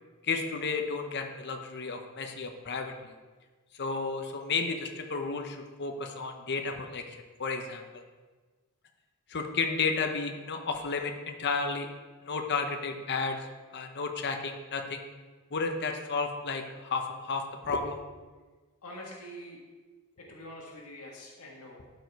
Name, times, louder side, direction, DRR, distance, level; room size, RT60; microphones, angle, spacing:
voice 1, 0.2-3.1 3.7-8.0 9.3-11.9 12.2-13.5 13.7-15.0 15.5-18.0, left 4 dB, 50° left, 4 dB, 0.9 m, -32 dB
voice 2, 18.8-19.6 20.2-21.9, equal, 90° left, -2 dB, 1.6 m, -45 dB
12.0 x 5.2 x 4.7 m, 1.3 s
head